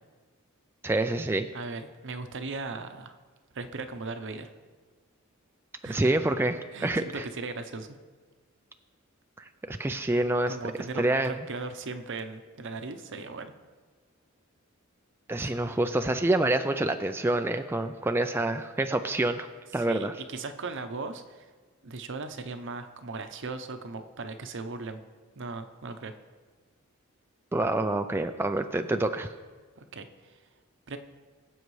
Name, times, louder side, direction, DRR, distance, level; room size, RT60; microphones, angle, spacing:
voice 1, 0.8-1.5 5.9-7.2 9.7-10.6 11.0-11.3 15.3-19.5 19.7-20.1 27.5-29.3, right 2 dB, 10° right, 6 dB, 0.3 m, -27 dB
voice 2, 1.5-3.2 3.5-4.5 5.8-6.0 6.7-8.0 10.5-13.5 15.4-15.5 19.7-21.5 21.8-25.0 25.3-26.1 29.8-30.4 30.9-31.0, right 3 dB, 60° right, 8 dB, 0.8 m, -38 dB
22.0 x 7.9 x 3.2 m, 1.5 s
head